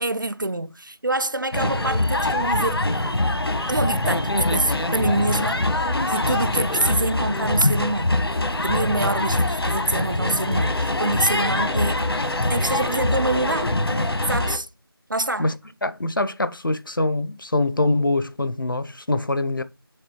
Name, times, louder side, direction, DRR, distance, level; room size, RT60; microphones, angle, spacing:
voice 1, 0.0-2.9 3.7-5.6 6.1-8.2 8.5-12.1 12.4-13.8 14.3-14.7 15.1-15.5, right 2 dB, 55° right, 0.4 m, -26 dB
sound 1, 1.5-14.6, left 1 dB, 80° left, 1.2 m, -23 dB
voice 2, 15.8-19.6, left 2 dB, 60° left, 0.6 m, -24 dB
6.6 x 3.5 x 4.4 m
figure-of-eight pair, 180°, 13 cm